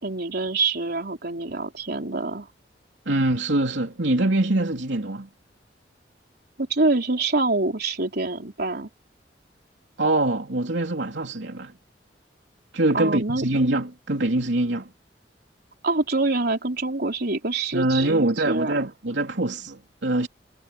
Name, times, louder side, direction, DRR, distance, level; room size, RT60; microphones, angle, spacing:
voice 1, 0.0-2.5 6.6-8.9 12.9-13.4 15.8-18.9, right 3 dB, 60° right, 4.1 m, -25 dB
voice 2, 3.0-5.3 10.0-11.7 12.7-14.9 17.7-20.3, right 2 dB, 85° right, 3.1 m, -24 dB
head